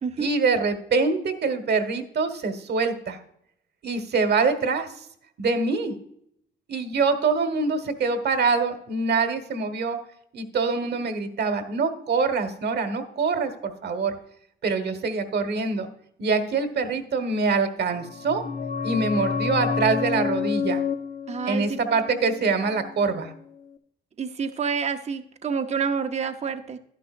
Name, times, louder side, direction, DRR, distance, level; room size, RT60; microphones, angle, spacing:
voice 1, 0.2-3.2 3.8-4.9 5.4-5.9 6.7-10.0 10.3-14.1 14.6-15.9 16.2-18.4 18.8-20.8 21.5-23.3, right 4 dB, 55° right, 9 dB, 1.4 m, -24 dB
sound 1, 17.9-23.3 23.6-23.7, left 6 dB, 40° left, 0.7 m, -29 dB
voice 2, 21.3-21.8 24.2-26.8, right 6 dB, 35° right, 7 dB, 0.7 m, -28 dB
11.0 x 10.5 x 2.5 m, 0.71 s
cardioid pair, 90°, 20 cm